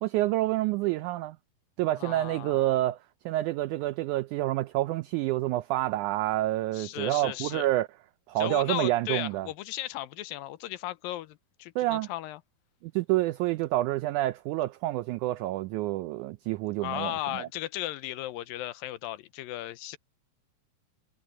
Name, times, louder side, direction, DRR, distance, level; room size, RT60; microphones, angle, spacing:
voice 1, 0.0-1.4 1.8-3.0 3.2-7.9 8.3-9.5 11.7-12.1 12.8-17.5, right 16 dB, 90° right, 1.7 m, -28 dB
voice 2, 2.0-2.9 6.7-7.7 8.4-12.4 16.8-20.0, left 15 dB, 90° left, 2.5 m, -36 dB
omnidirectional pair, 4.1 m